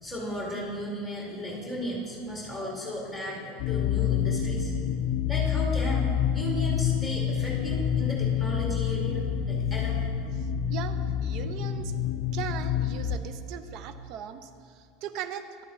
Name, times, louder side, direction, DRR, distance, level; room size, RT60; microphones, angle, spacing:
voice 1, 0.0-4.7 5.3-6.1 6.3-10.0, equal, 5° right, -4 dB, 2.3 m, -35 dB
sound 1, 3.6-13.2, left 9 dB, 55° left, 0.4 m, -27 dB
voice 2, 10.4-11.9 12.3-15.6, right 9 dB, 55° right, 11 dB, 0.5 m, -39 dB
11.5 x 8.6 x 3.1 m, 2.2 s
hypercardioid pair, 85°, 0 cm